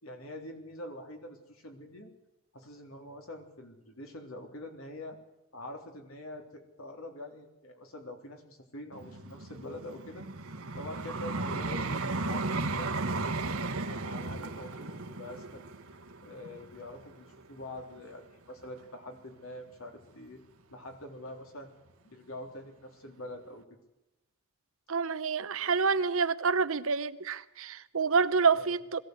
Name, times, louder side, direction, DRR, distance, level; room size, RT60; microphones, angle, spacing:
voice 1, 0.0-2.1 2.5-5.2 5.5-10.3 10.8-12.9 13.8-15.7 16.2-20.4 20.7-21.7 22.0-23.6 28.6-28.8, left 1 dB, 70° left, 3.7 m, -45 dB
Vehicle, 8.9-18.0 18.6-18.8, right 3 dB, 80° right, 1.6 m, -35 dB
voice 2, 24.9-29.0, right 5 dB, 65° right, 0.9 m, -27 dB
21.0 x 16.0 x 8.2 m
head